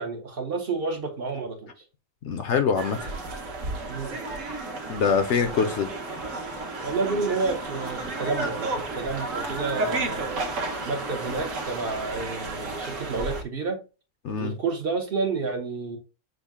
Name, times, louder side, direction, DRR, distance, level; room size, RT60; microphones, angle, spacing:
voice 1, 0.0-1.7 3.9-4.2 6.8-10.4 10.9-13.8 14.4-16.0, right 4 dB, 50° right, 0.8 m, -30 dB
voice 2, 2.2-3.1 4.9-5.9 14.2-14.6, left 6 dB, 65° left, 0.8 m, -24 dB
sound 1, 2.8-13.4, right 2 dB, 65° right, 1.3 m, -32 dB
6.2 x 2.1 x 3.5 m
omnidirectional pair, 1.5 m